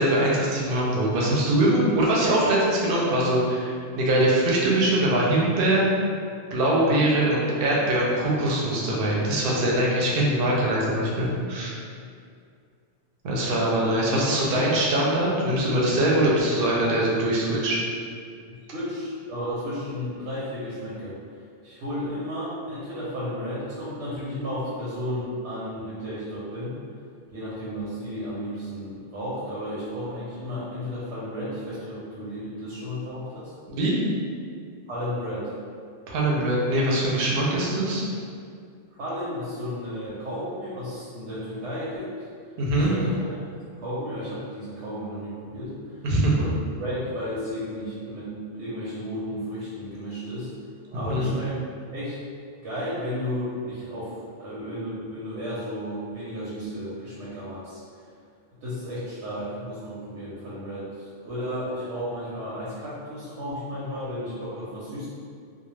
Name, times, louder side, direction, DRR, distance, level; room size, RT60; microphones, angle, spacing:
voice 1, 0.0-5.9 6.5-11.7 13.2-17.8 33.7-33.9 36.1-38.1 42.6-42.9 46.0-46.4 51.1-51.3, right 1 dB, 65° right, -4 dB, 0.7 m, -22 dB
voice 2, 18.5-21.2 21.6-26.8 27.3-33.5 34.9-35.5 38.9-42.3 42.7-43.4 43.8-46.0 46.3-50.5 50.9-51.6 51.9-52.2 52.6-57.8 58.6-65.1, equal, 85° right, -9 dB, 0.9 m, -33 dB
2.3 x 2.0 x 3.1 m, 2.3 s
omnidirectional pair, 1.2 m